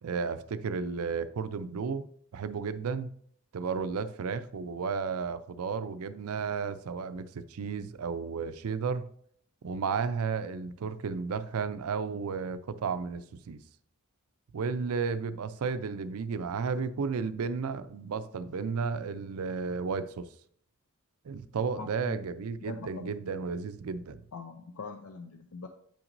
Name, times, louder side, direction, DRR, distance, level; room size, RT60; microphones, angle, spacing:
voice 1, 0.0-2.1 2.3-3.1 3.5-9.1 9.6-13.6 14.5-20.3 21.2-24.2, right 5 dB, 75° right, 0.4 m, -33 dB
voice 2, 21.8-22.2 22.6-23.1 24.3-25.7, left 4 dB, 70° left, 0.5 m, -42 dB
8.6 x 5.8 x 2.6 m
head